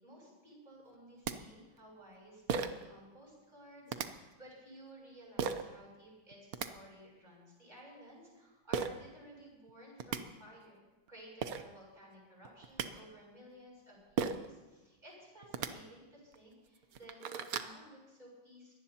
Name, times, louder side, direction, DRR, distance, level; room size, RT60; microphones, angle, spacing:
voice 1, 0.0-10.8 11.1-18.7, equal, 20° right, -4 dB, 7.2 m, -55 dB
sound 1, 0.9-1.0 1.2-1.3 2.5-2.9 3.9-4.1 5.4-5.6 6.3-6.7 8.7-8.9 9.7-9.8 10.0-10.2 11.1-11.2 11.4-11.6 12.4-12.9 14.2-14.5 15.4-15.7 16.3-16.4 16.8-17.7, right 6 dB, 60° right, 1.1 m, -35 dB
23.0 x 17.5 x 2.9 m, 1.2 s
omnidirectional pair, 2.1 m